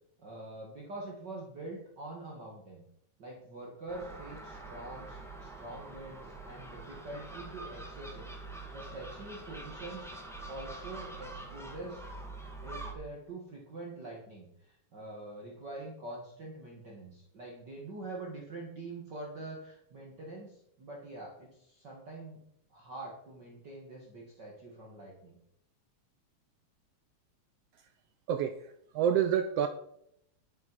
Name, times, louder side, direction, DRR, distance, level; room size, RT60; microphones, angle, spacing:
voice 1, 0.2-2.8 3.2-10.2 10.5-12.0 12.6-22.4 22.7-25.4, right 2 dB, 40° right, 2.0 m, -45 dB
Gull seagull, 3.9-12.9, right 2 dB, ahead, 1.0 m, -45 dB
voice 2, 28.3-29.7, right 9 dB, 75° right, 1.4 m, -28 dB
11.0 x 9.7 x 4.6 m
omnidirectional pair, 3.3 m